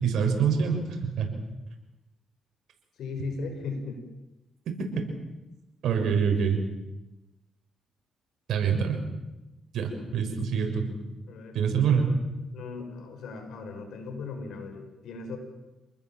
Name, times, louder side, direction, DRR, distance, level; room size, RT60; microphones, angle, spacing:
voice 1, 0.0-1.3 5.8-6.6 8.5-9.0 9.7-10.9 11.5-12.2, right 6 dB, 70° right, 4 dB, 6.6 m, -25 dB
voice 2, 3.0-4.0 11.3-11.6 12.5-15.4, left 4 dB, 75° left, 6 dB, 6.2 m, -37 dB
28.5 x 20.5 x 7.6 m, 1.0 s
cardioid pair, 90°, 0 cm